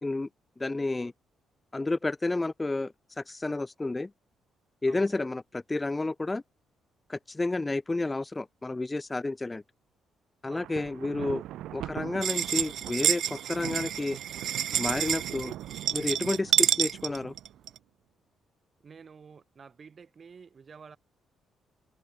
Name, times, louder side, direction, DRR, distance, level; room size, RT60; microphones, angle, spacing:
voice 1, 0.6-1.1 1.7-4.1 4.8-6.4 7.1-9.6 10.4-11.4 11.7-14.2 14.8-15.5 15.9-17.3, left 2 dB, 20° left, 0.4 m, -31 dB
voice 2, 4.9-5.2 10.5-10.8 18.8-21.0, right 6 dB, 40° right, 7.6 m, -51 dB
Thunder, 10.4-17.7, right 14 dB, 85° right, 3.9 m, -42 dB
sound 1, 12.2-17.8, right 10 dB, 65° right, 0.7 m, -28 dB
cardioid pair, 90°, 0 cm